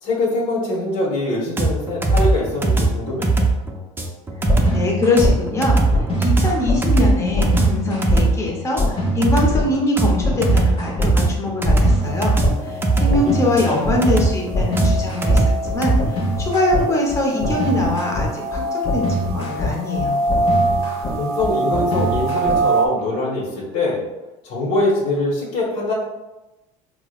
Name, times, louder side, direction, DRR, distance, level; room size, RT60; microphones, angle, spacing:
voice 1, 0.0-3.3 13.1-13.3 13.7-13.8 21.2-24.0 24.4-25.9, left 2 dB, 60° left, -5 dB, 1.1 m, -23 dB
sound 1, 1.6-16.0, right 3 dB, 15° right, 0.4 m, -19 dB
voice 2, 4.4-20.2, left 2 dB, 20° left, -2 dB, 0.8 m, -23 dB
sound 2, 4.5-5.3 5.9-6.8 7.3-8.2 8.8-9.6 10.2-11.1 11.6-12.5 13.1-14.0 14.5-22.9, left 1 dB, 35° left, 1.1 m, -23 dB
sound 3, 12.0-22.9, right 3 dB, 85° right, 0.6 m, -25 dB
4.6 x 2.1 x 2.3 m, 1.0 s
supercardioid pair, 105°, 16 cm